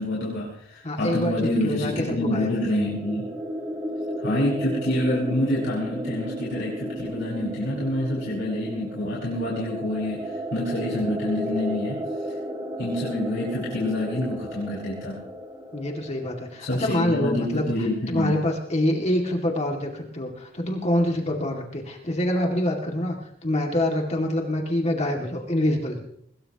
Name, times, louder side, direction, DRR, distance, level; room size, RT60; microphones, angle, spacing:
voice 1, 0.0-3.3 4.2-12.4 12.8-15.2 16.6-18.4, left 1 dB, 65° left, -6 dB, 5.1 m, -27 dB
voice 2, 0.8-2.5 15.7-17.7 18.1-23.2 23.4-26.0, left 1 dB, 35° left, 1 dB, 2.2 m, -26 dB
sound 1, 1.5-17.1, equal, 15° right, 3.0 m, -34 dB
22.5 x 21.0 x 2.9 m, 0.68 s
head